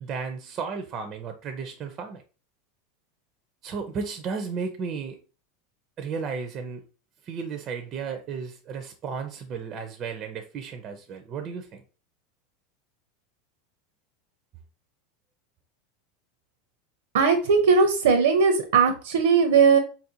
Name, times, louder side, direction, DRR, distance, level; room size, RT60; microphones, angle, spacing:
voice 1, 0.0-2.2 3.6-5.2 6.0-6.8 7.2-11.8, right 5 dB, 35° right, 7 dB, 0.5 m, -34 dB
voice 2, 17.1-19.8, right 5 dB, 85° right, 6 dB, 0.6 m, -19 dB
4.1 x 2.5 x 2.7 m, 0.35 s
supercardioid pair, 135°, 0 cm